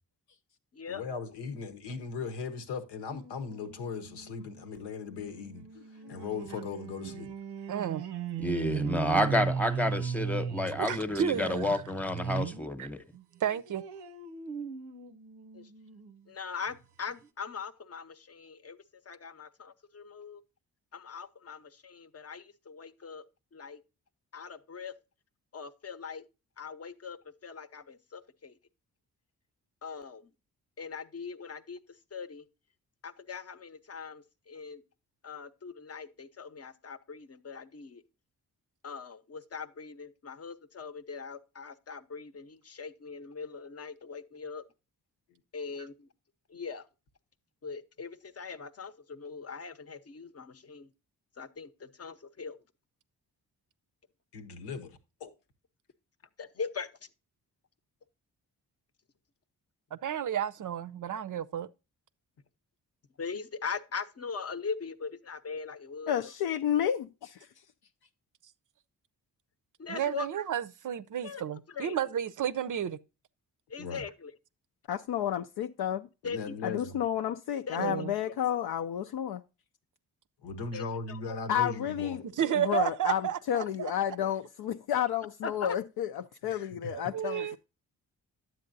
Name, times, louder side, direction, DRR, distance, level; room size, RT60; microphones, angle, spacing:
voice 1, 0.9-5.6 6.1-7.3 54.3-54.9 55.2-55.3 73.8-74.0 76.2-77.0 80.4-82.2 86.5-86.9 87.3-87.5, left 5 dB, 90° left, 1.0 m, -38 dB
sound 1, 3.1-12.7 13.1-16.2 16.7-16.8 17.1-17.2, right 6 dB, 90° right, 0.7 m, -37 dB
voice 2, 7.7-8.0 10.9-11.8 13.4-13.8 59.9-61.7 69.9-73.0 77.8-78.1 82.4-83.9 86.9-87.6, right 9 dB, 50° right, 0.5 m, -32 dB
voice 3, 8.4-13.0, left 1 dB, 5° left, 0.9 m, -30 dB
voice 4, 16.3-18.8 19.1-20.4 20.9-23.2 23.5-23.8 24.3-24.9 25.5-26.2 26.6-28.6 29.8-30.3 30.8-31.8 32.1-32.5 33.0-34.8 35.2-38.0 38.8-44.6 45.5-46.1 46.5-46.9 47.6-50.9 51.4-52.6 56.4-56.9 63.2-66.3 69.8-70.3 71.2-71.4 71.7-72.0 73.7-74.3 76.2-76.6 77.7-78.1 80.7-81.4 84.2-84.3 85.4-85.8, left 5 dB, 40° left, 0.8 m, -41 dB
voice 5, 66.1-67.5 74.9-76.1 76.6-79.4 81.5-87.6, left 10 dB, 70° left, 0.5 m, -31 dB
9.7 x 7.6 x 2.6 m
supercardioid pair, 55°, 40 cm